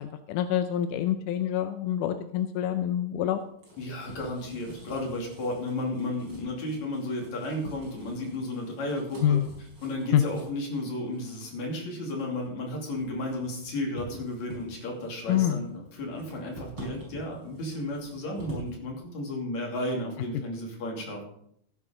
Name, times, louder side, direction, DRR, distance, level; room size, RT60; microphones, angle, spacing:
voice 1, 0.0-3.4 9.2-9.4 10.1-10.2 15.3-15.6, left 10 dB, 80° left, 8 dB, 1.9 m, -26 dB
sound 1, 3.3-18.7, right 2 dB, 30° right, 5.2 m, -48 dB
voice 2, 3.8-9.4 9.8-21.2, left 1 dB, 55° left, 0 dB, 3.9 m, -33 dB
16.0 x 10.0 x 3.8 m, 0.67 s
omnidirectional pair, 4.2 m